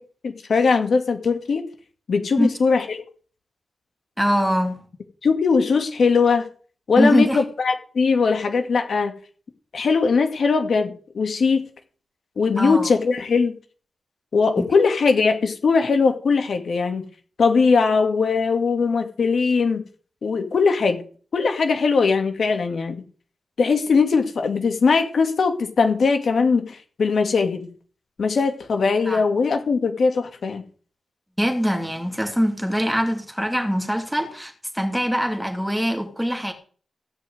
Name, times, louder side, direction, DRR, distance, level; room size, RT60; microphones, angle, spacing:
voice 1, 0.2-1.7 2.1-3.0 5.2-6.5 6.9-9.1 9.7-11.7 12.4-13.6 14.3-17.1 17.4-19.8 20.2-21.0 21.3-23.0 23.6-27.7 28.2-30.6, left 4 dB, 65° left, 2.3 m, -20 dB
voice 2, 4.2-4.8 7.0-7.4 12.6-12.9 14.6-14.7 29.1-29.2 31.4-36.5, equal, ahead, 2.8 m, -23 dB
16.5 x 5.9 x 9.3 m
wide cardioid pair, 115°, 0 cm